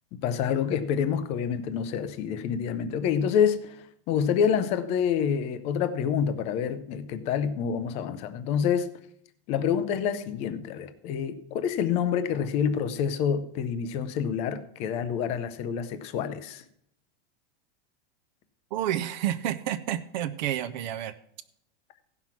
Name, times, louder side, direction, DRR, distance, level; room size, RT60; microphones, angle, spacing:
voice 1, 0.1-8.9 9.5-16.6, left 7 dB, 20° left, 0.5 m, -27 dB
voice 2, 18.7-21.1, right 11 dB, 45° right, 0.5 m, -30 dB
15.5 x 5.9 x 5.9 m
supercardioid pair, 170°, 31 cm